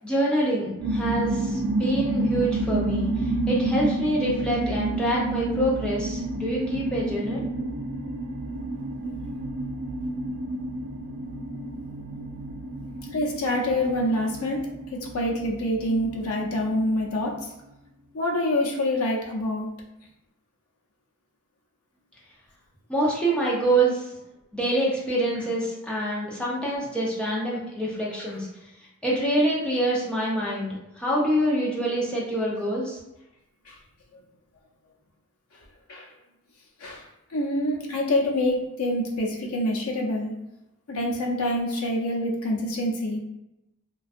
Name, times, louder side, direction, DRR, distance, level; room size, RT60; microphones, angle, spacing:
voice 1, 0.0-7.7 22.9-24.1 24.5-28.5 29.0-33.0, right 1 dB, 5° left, -6 dB, 0.6 m, -26 dB
sound 1, 0.8-17.4, right 2 dB, 75° right, 0.3 m, -30 dB
voice 2, 13.1-17.4 18.1-19.7 33.7-33.8 35.9-36.1 36.8-37.0 37.3-40.3 40.9-43.2, left 1 dB, 90° left, -1 dB, 0.6 m, -26 dB
2.5 x 2.3 x 2.4 m, 0.89 s
head